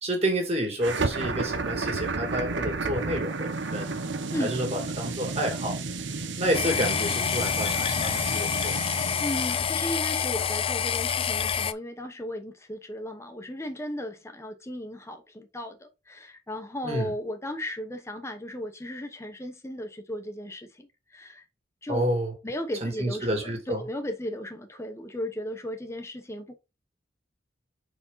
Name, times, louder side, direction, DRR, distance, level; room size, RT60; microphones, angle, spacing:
voice 1, 0.0-4.0 4.4-5.8 6.4-8.7 16.8-17.1 21.9-22.3 22.8-23.8, right 1 dB, 35° right, 2.5 m, -29 dB
sound 1, 0.8-9.9, right 3 dB, 70° right, 0.9 m, -32 dB
sound 2, 6.5-11.7, left 7 dB, 30° left, 0.3 m, -27 dB
voice 2, 9.2-21.4 21.8-22.0 22.4-26.6, left 1 dB, 15° left, 1.0 m, -35 dB
5.2 x 4.9 x 4.0 m
head